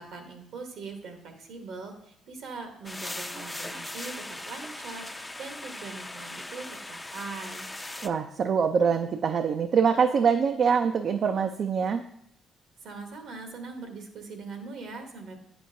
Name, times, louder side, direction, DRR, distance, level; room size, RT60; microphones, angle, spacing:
voice 1, 0.0-7.7 12.8-15.4, right 4 dB, 70° right, 5 dB, 1.1 m, -41 dB
sound 1, 2.9-8.1, left 2 dB, 15° left, 0.4 m, -39 dB
voice 2, 8.0-12.0, right 6 dB, 55° right, 6 dB, 0.4 m, -24 dB
8.3 x 6.0 x 2.6 m, 0.73 s
supercardioid pair, 70°, 0 cm